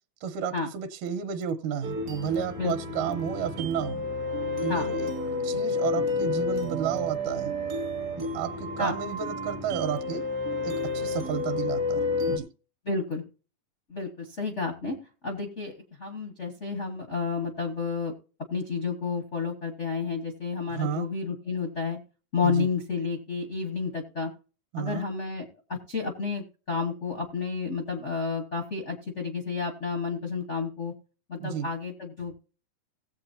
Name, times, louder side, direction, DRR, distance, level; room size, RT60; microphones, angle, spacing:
voice 1, 0.2-4.0 4.6-5.1 5.4-7.5 8.2-10.3 10.6-12.5 20.7-21.1 22.4-22.7 24.7-25.1 31.4-31.7, right 8 dB, 75° right, 9 dB, 2.3 m, -32 dB
sound 1, 1.8-12.4, left 2 dB, 55° right, 1.0 m, -30 dB
voice 2, 12.8-13.2 13.9-15.0 15.2-15.7 16.0-18.1 18.5-22.0 22.3-24.3 24.8-30.9 31.3-32.3, left 4 dB, 65° left, 3 dB, 0.7 m, -31 dB
18.0 x 7.9 x 2.7 m, 0.35 s
omnidirectional pair, 3.8 m